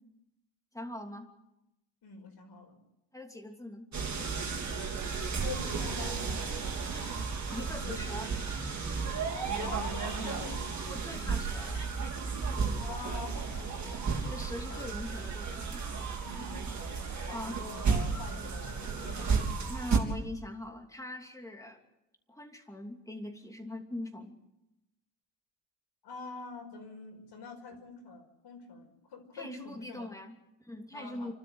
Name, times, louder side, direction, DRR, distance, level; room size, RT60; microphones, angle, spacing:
voice 1, 0.7-1.3 3.1-3.9 7.5-8.3 10.1-10.3 10.9-11.9 14.2-15.9 17.3-17.6 19.7-21.8 22.3-24.4 29.3-31.3, left 1 dB, 5° left, 4 dB, 2.8 m, -42 dB
voice 2, 2.0-2.8 5.4-6.6 7.6-8.1 9.6-11.4 12.8-14.1 14.7-15.0 16.2-19.3 19.6-19.7 26.0-30.1 30.9-31.3, left 4 dB, 60° left, 2 dB, 5.6 m, -45 dB
sound 1, 3.9-20.0, right 5 dB, 35° right, 3.9 m, -33 dB
30.0 x 12.5 x 7.9 m, 0.91 s
cardioid pair, 110°, 48 cm